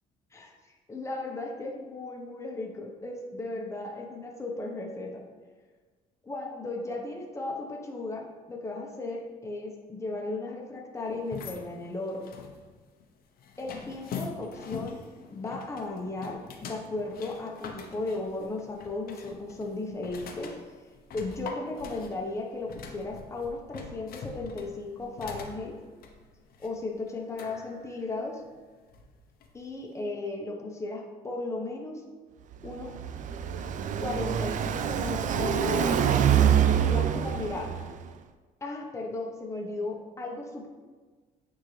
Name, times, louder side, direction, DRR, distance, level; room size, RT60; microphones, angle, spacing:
voice 1, 0.9-5.2 6.2-12.3 13.6-15.0 15.3-16.4 16.7-20.5 21.1-25.8 26.6-28.4 29.5-32.0 32.6-32.9 34.0-36.0 36.8-37.7 38.6-40.7, left 2 dB, 15° left, 0 dB, 1.1 m, -35 dB
sound 1, 11.1-29.7, left 5 dB, 60° left, 0.9 m, -44 dB
Car passing by, 32.5-38.1, right 9 dB, 50° right, 0.4 m, -25 dB
9.0 x 3.7 x 3.3 m, 1.4 s
cardioid pair, 110°, 17 cm